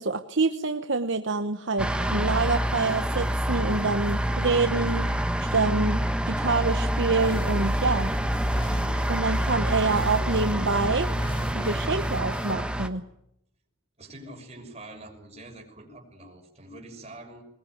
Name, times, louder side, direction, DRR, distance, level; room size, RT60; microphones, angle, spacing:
voice 1, 0.0-6.0 6.3-8.1 9.1-11.2 11.5-13.0, right 3 dB, 60° right, 8 dB, 1.0 m, -26 dB
sound 1, 1.8-12.9, equal, 5° right, 1.2 m, -27 dB
sound 2, 7.2-12.5, equal, 25° left, 4.2 m, -37 dB
voice 2, 14.0-17.4, right 1 dB, 30° right, 2 dB, 6.2 m, -45 dB
21.5 x 20.5 x 9.6 m, 0.78 s
head